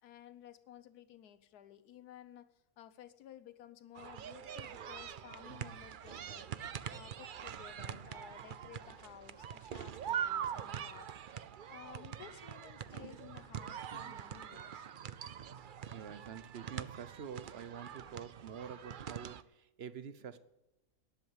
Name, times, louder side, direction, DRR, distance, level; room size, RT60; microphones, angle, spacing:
voice 1, 0.0-6.5 6.9-11.1 11.7-14.9, left 11 dB, 85° left, 13 dB, 1.3 m, -55 dB
sound 1, 3.9-19.4, right 9 dB, 75° right, 0.4 m, -43 dB
voice 2, 15.9-20.4, right 7 dB, 50° right, 13 dB, 1.0 m, -47 dB
13.0 x 11.0 x 8.0 m, 0.91 s
omnidirectional pair, 1.6 m